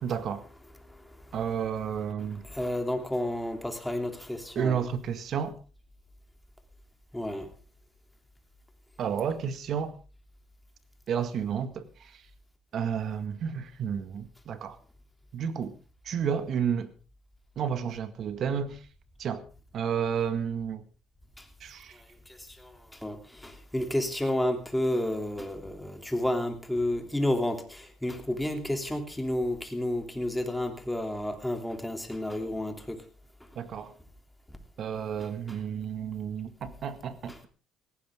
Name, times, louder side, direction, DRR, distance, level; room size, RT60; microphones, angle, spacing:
voice 1, 0.0-0.4 1.3-2.4 4.5-5.6 9.0-9.9 11.1-12.1 12.7-14.8 15.3-15.7 16.0-16.9 17.5-18.8 19.2-19.4 19.7-20.8 21.6-22.0 33.5-33.9 34.8-37.5, right 7 dB, 55° right, 1.8 m, -31 dB
voice 2, 2.5-4.9 7.1-7.5 23.0-23.2 23.4-33.0, left 1 dB, 5° left, 3.0 m, -30 dB
18.0 x 16.0 x 3.7 m
cardioid pair, 110°, 0 cm